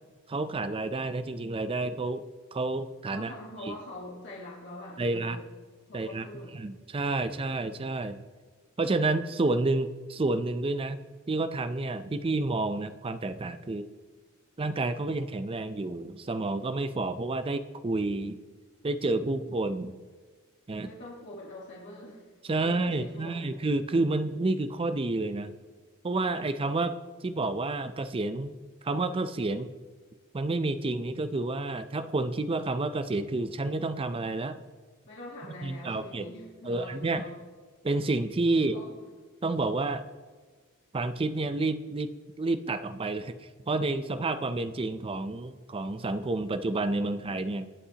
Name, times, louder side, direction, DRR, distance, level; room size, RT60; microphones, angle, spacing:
voice 1, 0.3-2.3 2.5-3.3 3.7-3.8 5.0-5.4 5.9-6.2 6.5-8.2 8.8-11.0 11.3-13.9 14.6-18.4 18.8-20.0 20.7-20.9 22.4-25.5 26.0-26.9 27.2-28.5 28.8-29.7 30.3-34.6 35.6-36.3 36.6-37.2 37.8-38.8 39.4-40.0 40.9-42.1 42.4-43.3 43.7-47.7, right 2 dB, 25° right, 12 dB, 0.5 m, -29 dB
voice 2, 3.1-5.4 5.9-6.5 20.8-22.3 22.6-23.6 35.1-37.4 38.6-38.9, left 1 dB, 55° left, -4 dB, 1.7 m, -44 dB
19.5 x 8.4 x 2.9 m, 1.4 s
head